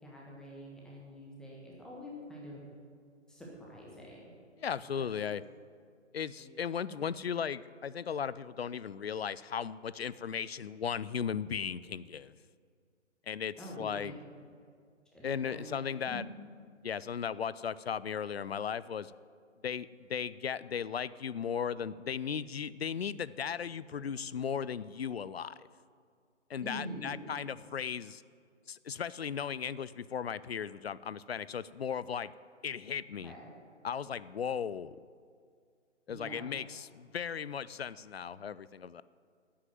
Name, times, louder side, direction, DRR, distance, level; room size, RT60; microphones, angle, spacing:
voice 1, 0.0-2.6 3.3-4.3 5.0-5.1 6.4-6.5 6.9-7.0 13.6-14.2 15.1-15.7 16.0-16.2 26.6-27.1 33.2-33.5 36.1-36.5, equal, ahead, -4 dB, 1.4 m, -46 dB
voice 2, 4.6-5.4 6.1-12.3 13.3-14.2 15.2-16.2 16.8-19.1 19.6-25.7 26.5-28.2 28.7-32.3 32.6-33.3 33.8-35.0 36.1-39.0, left 7 dB, 55° left, 18 dB, 0.5 m, -36 dB
10.5 x 8.6 x 9.2 m, 2.1 s
figure-of-eight pair, 135°, 36 cm